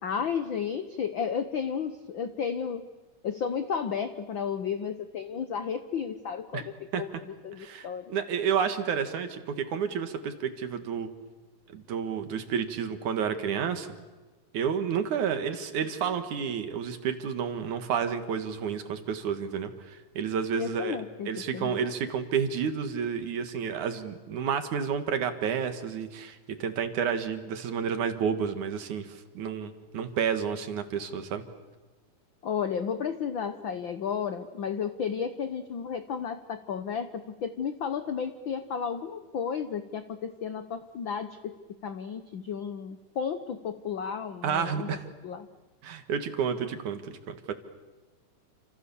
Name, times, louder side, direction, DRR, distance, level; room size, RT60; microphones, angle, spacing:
voice 1, 0.0-2.9 3.2-8.2 20.6-21.8 32.4-41.6 41.8-44.9 45.2-45.5, left 7 dB, 70° left, 10 dB, 1.1 m, -33 dB
voice 2, 7.6-11.1 11.7-13.9 14.5-21.0 21.3-31.4 44.4-45.0 45.8-47.5, right 7 dB, 75° right, 8 dB, 3.1 m, -30 dB
29.5 x 27.0 x 7.1 m, 1.3 s
omnidirectional pair, 3.6 m